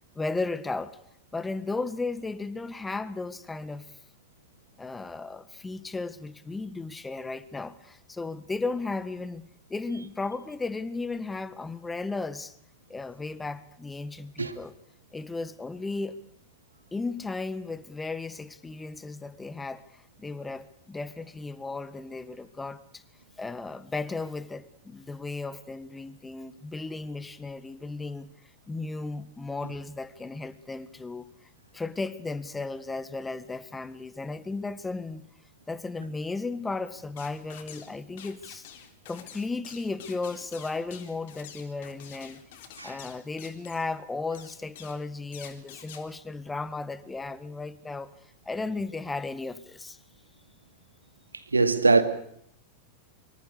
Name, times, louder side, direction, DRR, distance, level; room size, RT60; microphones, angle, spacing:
voice 1, 0.1-1.0 1.3-4.0 4.8-9.4 9.7-12.5 12.9-14.7 15.1-16.2 16.9-23.0 23.4-28.3 28.7-31.3 31.7-35.3 35.7-38.6 39.1-42.4 42.8-50.0, left 3 dB, 10° left, 1.7 m, -35 dB
sound 1, 37.2-37.9 38.2-43.9 44.3-45.0 45.3-46.0, left 9 dB, 55° left, 3.6 m, -47 dB
voice 2, 51.3-52.0, right 3 dB, 80° right, 2.4 m, -22 dB
25.0 x 25.0 x 6.7 m
figure-of-eight pair, 90°, 0 cm